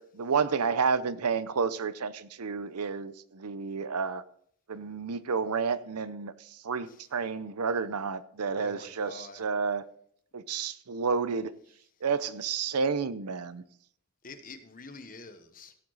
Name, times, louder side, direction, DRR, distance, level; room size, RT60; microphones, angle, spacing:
voice 1, 0.0-4.2 4.7-6.3 6.6-9.8 10.3-11.5 12.0-13.6, right 5 dB, 85° right, 14 dB, 0.7 m, -30 dB
voice 2, 8.5-9.5 14.2-15.7, left 3 dB, 40° left, 8 dB, 1.2 m, -47 dB
17.0 x 7.8 x 4.0 m, 0.63 s
head